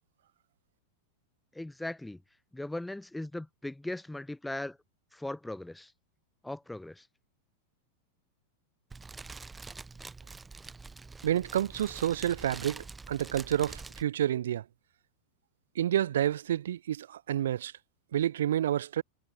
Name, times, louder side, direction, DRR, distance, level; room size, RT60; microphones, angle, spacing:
voice 1, 1.5-2.2 2.5-4.8 5.1-5.9 6.4-7.1, left 1 dB, 5° left, 2.6 m, -38 dB
Fire, 8.9-14.0, right 4 dB, 10° right, 3.2 m, -45 dB
voice 2, 11.2-14.6 15.7-17.7 18.1-19.0, right 11 dB, 60° right, 1.2 m, -29 dB
figure-of-eight pair, 90°, 0 cm